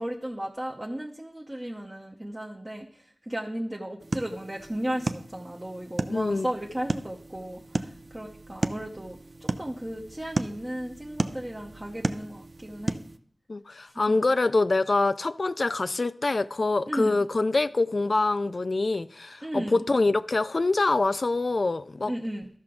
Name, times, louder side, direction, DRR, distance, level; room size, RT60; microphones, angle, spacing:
voice 1, 0.0-13.0 13.9-14.2 16.9-17.2 19.4-19.8 22.1-22.5, right 1 dB, 25° right, 0.8 m, -35 dB
sound 1, 4.0-13.2, right 3 dB, 60° right, 0.5 m, -34 dB
voice 2, 6.1-6.5 13.5-22.1, left 3 dB, 55° left, 0.3 m, -25 dB
13.0 x 5.8 x 3.7 m
wide cardioid pair, 60°, 0 cm